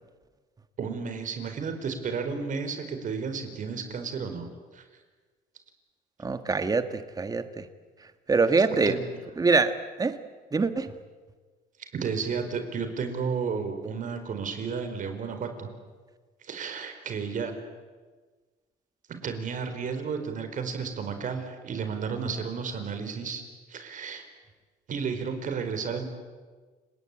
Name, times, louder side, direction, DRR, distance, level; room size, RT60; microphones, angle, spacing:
voice 1, 0.8-4.5 4.7-4.8 8.8-9.0 11.8-15.7 16.4-17.5 19.2-23.4 23.7-24.2 24.9-26.0, right 5 dB, 50° right, 7 dB, 4.6 m, -32 dB
voice 2, 6.2-7.7 8.3-9.0 9.4-10.2 10.5-10.9, right 4 dB, 20° right, 10 dB, 1.8 m, -24 dB
29.5 x 19.5 x 9.0 m, 1.4 s
cardioid pair, 110°, 17 cm